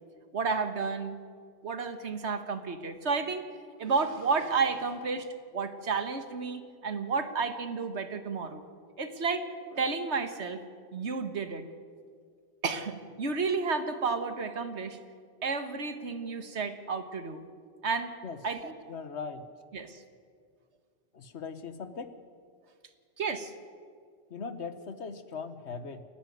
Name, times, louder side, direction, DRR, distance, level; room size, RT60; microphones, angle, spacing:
voice 1, 0.3-1.2 1.6-3.5 3.8-5.3 5.5-8.6 9.0-9.5 9.7-10.6 10.9-11.6 12.6-15.0 15.4-17.4 17.8-18.1 18.4-18.7 19.7-20.0 23.2-23.5, right 4 dB, 90° right, 9 dB, 1.7 m, -31 dB
voice 2, 18.9-19.4 21.1-22.1 24.3-26.0, left 5 dB, 80° left, 11 dB, 1.5 m, -39 dB
29.0 x 10.5 x 9.3 m, 2.1 s
omnidirectional pair, 1.1 m